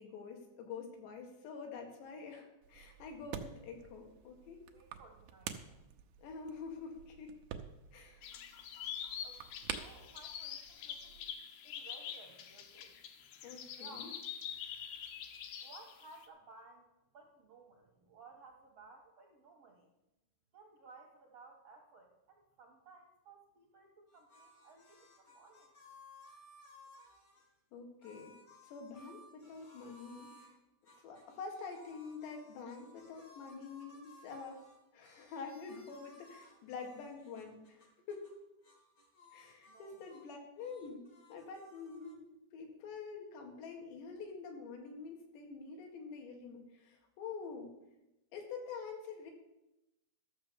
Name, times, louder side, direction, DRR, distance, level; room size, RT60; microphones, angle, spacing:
voice 1, 0.0-4.6 6.2-7.3 7.9-8.3 13.4-14.1 27.7-28.3 28.6-30.6 31.0-34.6 34.9-38.3 39.3-42.2 42.5-47.7 48.3-49.3, left 5 dB, 90° left, 2 dB, 4.1 m, -47 dB
sound 1, 2.6-11.3, right 9 dB, 90° right, 1.8 m, -49 dB
voice 2, 4.7-5.9 9.2-11.2 11.6-12.9 13.5-14.1 15.6-16.9 17.1-19.9 20.5-25.7 39.7-40.0 41.8-41.9, right 3 dB, 70° right, -1 dB, 1.5 m, -58 dB
sound 2, 8.2-16.3, left 9 dB, 75° left, 2.7 m, -45 dB
sound 3, 24.1-27.5 28.0-30.5 30.8-38.4 38.6-40.3 40.5-42.1, left 2 dB, 55° left, 1.0 m, -60 dB
13.0 x 6.9 x 6.9 m, 0.92 s
omnidirectional pair, 4.8 m